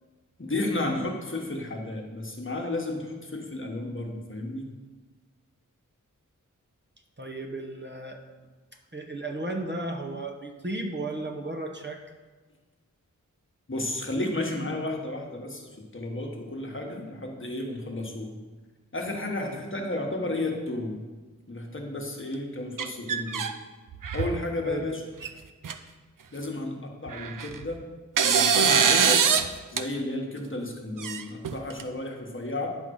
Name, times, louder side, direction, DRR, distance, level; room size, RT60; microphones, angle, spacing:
voice 1, 0.4-4.7 13.7-18.3 18.9-21.0 21.5-23.5 24.1-25.0 26.3-27.8 28.2-29.3 29.7-32.7, left 2 dB, 40° left, 2 dB, 1.2 m, -32 dB
voice 2, 7.2-8.2 8.9-12.0 19.4-19.6 24.6-24.9, right 2 dB, 35° right, 3 dB, 0.9 m, -34 dB
sound 1, 22.8-23.5 23.9-24.4 25.2-25.3 25.6-25.7 27.1-27.6 28.2-29.5 29.8-29.9 31.0-31.8, right 7 dB, 80° right, 0.6 m, -23 dB
9.9 x 3.8 x 6.2 m, 1.3 s
wide cardioid pair, 75°, 32 cm